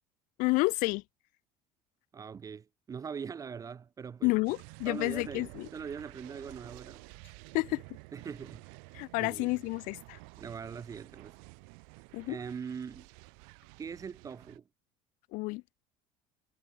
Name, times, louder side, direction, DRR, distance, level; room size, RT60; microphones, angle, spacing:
voice 1, 0.4-1.0 4.2-5.7 7.5-7.8 8.9-10.2 12.1-12.4 15.3-15.6, left 24 dB, 65° left, 0.4 m, -30 dB
voice 2, 2.1-4.3 4.8-7.0 8.1-8.6 9.2-9.6 10.4-11.4 12.3-13.1 13.8-14.6, right 6 dB, 25° right, 0.3 m, -42 dB
sound 1, 4.4-14.6, right 40 dB or more, 75° right, 2.9 m, -51 dB
supercardioid pair, 85°, 15 cm